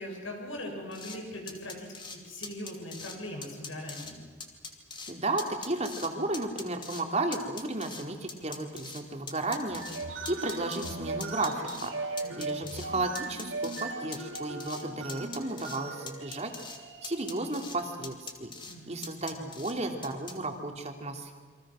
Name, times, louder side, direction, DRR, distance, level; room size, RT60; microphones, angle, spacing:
voice 1, 0.0-4.3 12.2-12.6 18.7-19.0, left 1 dB, 85° left, 1 dB, 7.1 m, -41 dB
sound 1, 0.9-1.2 1.5-2.2 2.4-3.2 3.4-4.1 4.4-5.1 5.4-6.1 6.3-7.0 7.3-9.0 9.3-11.0 11.2-11.9 12.2-12.9 13.2-13.9 14.1-14.8 15.1-15.8 16.1-16.8 17.0-17.8 18.0-18.7 19.0-19.7 20.0-20.3, left 4 dB, 25° left, 2.7 m, -42 dB
voice 2, 5.1-9.8 10.3-11.9 12.4-16.5 17.0-18.5 18.9-21.3, right 2 dB, 35° right, 4 dB, 2.8 m, -33 dB
sound 2, 9.7-18.0, right 3 dB, 85° right, 3.1 m, -39 dB
28.5 x 24.5 x 6.3 m, 1.5 s
head